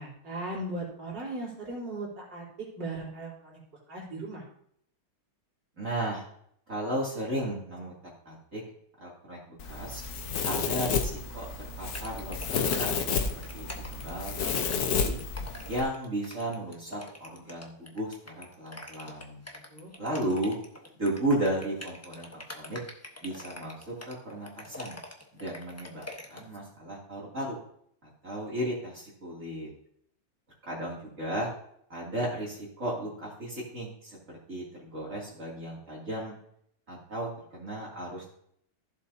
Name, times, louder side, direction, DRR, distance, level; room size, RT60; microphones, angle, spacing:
voice 1, 0.0-4.4 19.7-19.9, right 2 dB, 60° right, -5 dB, 4.1 m, -38 dB
voice 2, 5.8-6.2 6.7-7.9 8.2-8.6 9.0-9.4 9.7-10.0 10.4-12.9 13.5-15.2 15.7-19.4 20.0-20.6 20.9-22.8 23.2-24.9 25.4-26.0 26.3-27.6 28.0-29.7 30.6-31.5 31.9-34.2 34.5-36.3 36.9-38.3, right 1 dB, 40° right, -5 dB, 2.9 m, -34 dB
Domestic sounds home sounds, 9.6-15.8, left 5 dB, 55° left, 1.2 m, -31 dB
sound 1, 11.9-26.6, left 1 dB, 15° left, 0.6 m, -44 dB
15.0 x 7.3 x 2.8 m, 0.68 s
omnidirectional pair, 2.2 m